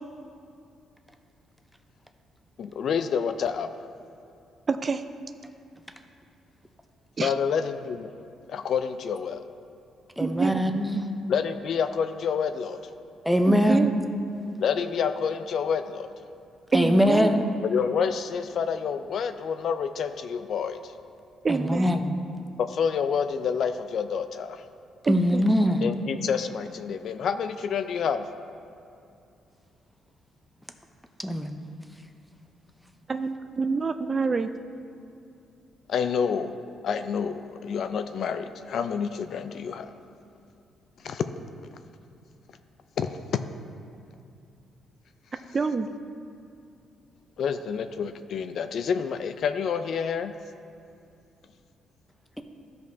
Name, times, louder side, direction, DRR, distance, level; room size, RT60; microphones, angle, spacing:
voice 1, 2.6-3.7 7.2-8.1 8.5-9.5 11.3-12.8 14.6-16.3 17.6-20.9 22.6-24.6 25.8-28.3 35.9-36.5 36.8-39.9 41.0-41.2 43.0-43.1 47.4-50.3, left 6 dB, 65° left, 10 dB, 0.4 m, -28 dB
voice 2, 4.7-5.0 7.2-7.3 10.2-10.7 13.5-14.0 16.7-17.3 21.4-22.0 25.1-25.6 33.1-34.5 45.5-45.9, right 4 dB, 35° right, 10 dB, 0.3 m, -26 dB
voice 3, 10.2-11.0 13.2-13.9 16.7-17.4 21.5-22.1 25.1-25.8 31.2-31.6, equal, ahead, 6 dB, 0.6 m, -22 dB
13.5 x 5.2 x 2.7 m, 2.6 s
cardioid pair, 90°, 0 cm